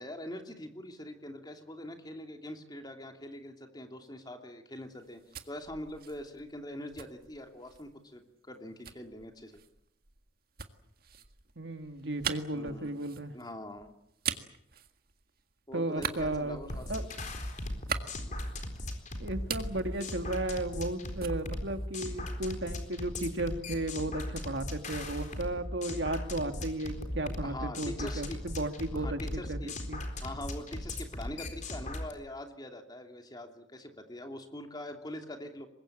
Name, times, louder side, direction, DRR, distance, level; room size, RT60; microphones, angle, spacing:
voice 1, 0.0-5.2 5.5-9.6 12.5-12.9 13.3-13.9 15.7-17.1 27.4-28.4 28.9-29.7 30.2-35.7, left 1 dB, 20° left, 4 dB, 2.9 m, -43 dB
sound 1, 4.9-8.0 8.8-15.5 15.9-18.9 19.2-20.9 21.2-22.5, right 7 dB, 50° right, 1.8 m, -41 dB
voice 2, 11.6-13.3 15.7-16.6 16.9-17.0 19.2-30.0, right 1 dB, 65° right, 7 dB, 2.2 m, -34 dB
sound 2, 16.7-32.1, left 1 dB, 40° left, 4.1 m, -38 dB
25.0 x 21.5 x 8.6 m, 0.75 s
head